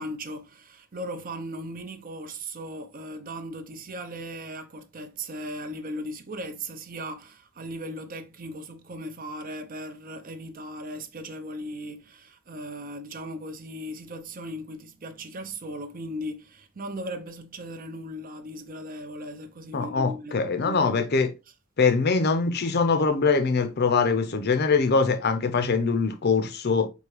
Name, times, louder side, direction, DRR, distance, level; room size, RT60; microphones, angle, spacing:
voice 1, 0.0-20.8, equal, 45° right, 0.6 m, -37 dB
voice 2, 19.7-21.3 21.8-26.9, left 4 dB, 50° left, 0.6 m, -23 dB
4.6 x 2.7 x 3.1 m
head